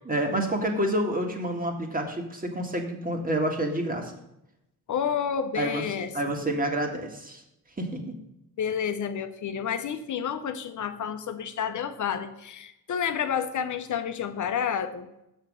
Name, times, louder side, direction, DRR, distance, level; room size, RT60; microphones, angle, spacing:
voice 1, 0.1-4.1 5.6-5.8 6.1-7.4 7.8-8.2, right 1 dB, 20° right, 3 dB, 1.8 m, -28 dB
voice 2, 4.9-6.1 8.6-15.1, left 7 dB, 50° left, 9 dB, 0.9 m, -30 dB
6.6 x 5.7 x 6.3 m, 0.84 s
supercardioid pair, 60°, 39 cm